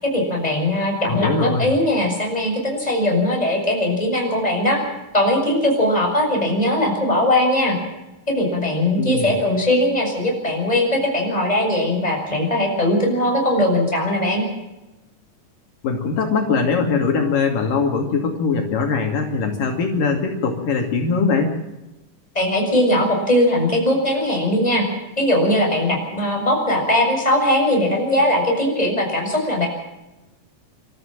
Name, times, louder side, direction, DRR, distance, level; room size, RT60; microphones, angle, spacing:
voice 1, 0.0-4.8 5.1-7.8 8.3-14.4 22.4-24.9 25.2-29.7, left 1 dB, 10° left, 1 dB, 7.0 m, -20 dB
voice 2, 1.1-1.7 9.0-9.4 15.8-21.5, left 4 dB, 75° left, 3 dB, 4.2 m, -21 dB
29.0 x 13.5 x 7.5 m, 0.99 s
omnidirectional pair, 3.9 m